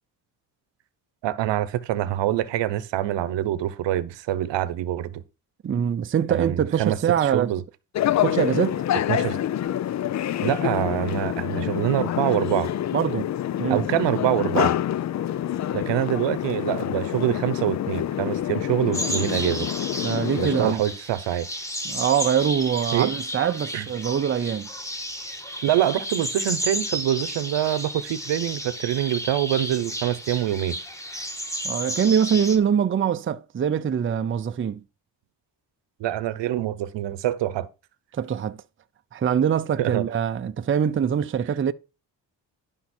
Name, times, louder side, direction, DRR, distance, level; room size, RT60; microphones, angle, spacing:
voice 1, 1.2-5.2 6.3-7.6 9.1-9.4 10.4-12.7 13.7-14.8 15.7-19.7 20.4-21.5 22.9-23.1 23.7-23.9 25.6-30.8 36.0-37.7 39.8-40.0, right 12 dB, 80° right, 1.0 m, -25 dB
voice 2, 5.6-7.5 8.2-8.8 12.9-13.3 13.6-13.8 20.0-20.8 21.8-24.7 31.6-34.8 38.1-38.6 39.1-41.7, right 8 dB, 30° right, 0.6 m, -23 dB
sound 1, 7.9-20.7, left 11 dB, 40° left, 0.4 m, -27 dB
sound 2, 18.9-32.6, equal, 5° left, 1.8 m, -32 dB
11.5 x 5.4 x 4.4 m
cardioid pair, 105°, 43 cm